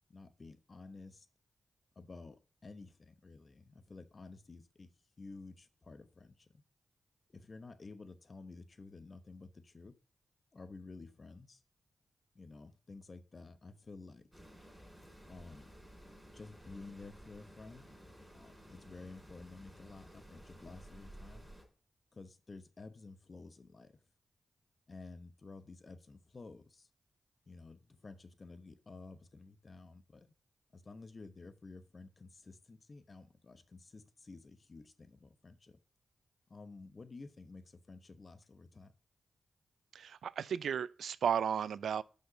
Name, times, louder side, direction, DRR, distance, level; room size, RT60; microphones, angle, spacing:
voice 1, 0.1-1.3 2.0-4.9 5.2-6.6 7.3-9.9 10.5-11.6 12.3-14.2 15.3-15.7 16.3-17.8 18.3-21.5 22.1-24.0 24.9-26.9 27.5-30.3 30.7-35.8 36.5-39.0, left 3 dB, 50° left, 1.0 m, -52 dB
sound 1, 14.3-21.7, equal, 5° right, 4.1 m, -55 dB
voice 2, 39.9-42.0, right 8 dB, 85° right, 0.3 m, -34 dB
5.8 x 5.4 x 6.8 m
supercardioid pair, 45°, 0 cm